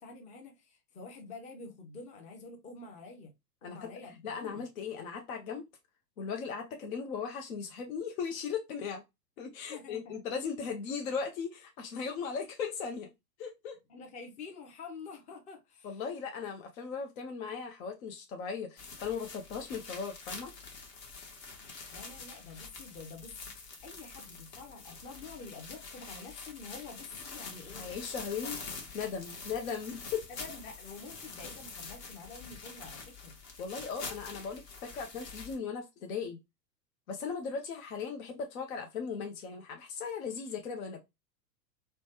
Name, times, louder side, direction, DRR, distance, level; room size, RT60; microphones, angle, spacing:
voice 1, 0.0-3.3 3.6-4.6 9.7-10.2 13.9-16.0 21.9-27.9 28.4-28.6 30.3-33.4, left 4 dB, 15° left, 0.5 m, -48 dB
voice 2, 4.2-5.7 6.2-9.0 9.4-13.1 13.4-13.8 15.8-20.5 27.7-28.6 28.9-30.2 33.6-36.4 37.1-41.0, left 6 dB, 60° left, 0.7 m, -37 dB
sound 1, 18.8-35.6, left 4 dB, 35° left, 0.9 m, -46 dB
3.1 x 2.1 x 2.8 m
hypercardioid pair, 105°, 49 cm